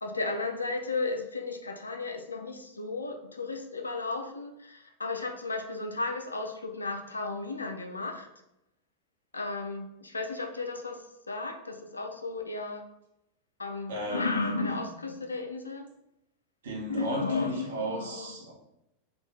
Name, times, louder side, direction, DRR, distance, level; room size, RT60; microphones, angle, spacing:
voice 1, 0.0-8.3 9.3-12.8 13.6-15.9 16.9-18.3, left 3 dB, 80° left, 5 dB, 0.4 m, -34 dB
voice 2, 13.9-14.4 16.6-18.5, right 1 dB, 65° right, -2 dB, 0.8 m, -35 dB
2.6 x 2.4 x 3.3 m, 0.86 s
figure-of-eight pair, 90°, 0 cm